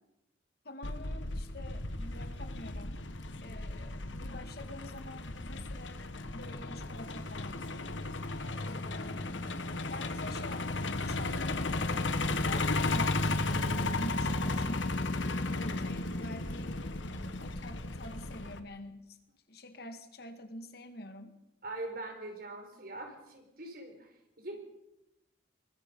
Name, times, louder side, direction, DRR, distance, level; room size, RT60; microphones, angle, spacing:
voice 1, 0.6-3.1 3.4-7.7 8.7-9.5 9.9-11.5 12.4-15.0 15.5-16.8 17.2-19.2 19.5-21.4, left 1 dB, 55° left, 8 dB, 2.0 m, -47 dB
Truck, 0.8-18.6, left 2 dB, 80° left, 1.5 m, -34 dB
voice 2, 8.9-9.3 21.6-24.6, right 2 dB, 50° right, 4 dB, 4.9 m, -43 dB
23.5 x 21.5 x 5.5 m, 0.87 s
head